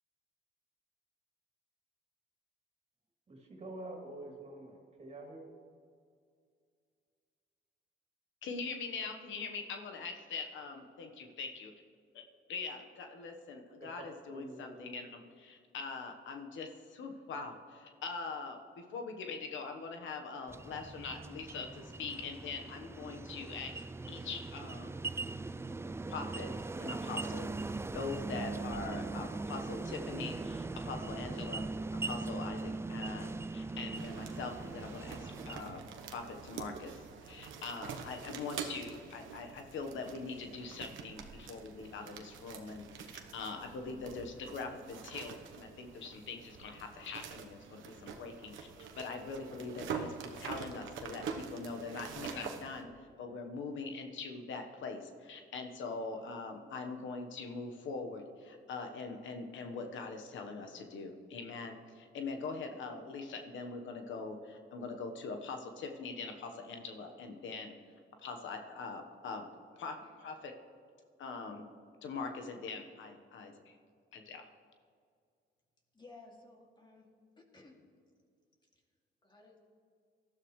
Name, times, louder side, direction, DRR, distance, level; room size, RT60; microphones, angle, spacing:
voice 1, 3.3-5.5 13.8-14.8, right 2 dB, 35° right, 0 dB, 3.2 m, -47 dB
voice 2, 8.4-11.7 12.1-12.2 12.5-24.9 26.1-26.5 26.8-27.5 27.9-31.6 32.0-35.8 36.1-48.7 48.9-67.7 68.2-69.5 69.8-70.5 71.2-71.6 72.0-73.8 74.1-74.5, left 4 dB, 75° left, 5 dB, 1.3 m, -43 dB
sound 1, 20.5-35.6, right 3 dB, 15° right, 0.4 m, -40 dB
sound 2, 33.9-52.8, right 6 dB, 80° right, 1.1 m, -46 dB
voice 3, 75.9-77.1 77.4-77.8 78.7-78.8 79.2-79.6, left 3 dB, 20° left, 0 dB, 2.5 m, -56 dB
19.0 x 12.5 x 3.2 m, 2.2 s
cardioid pair, 90°, 20 cm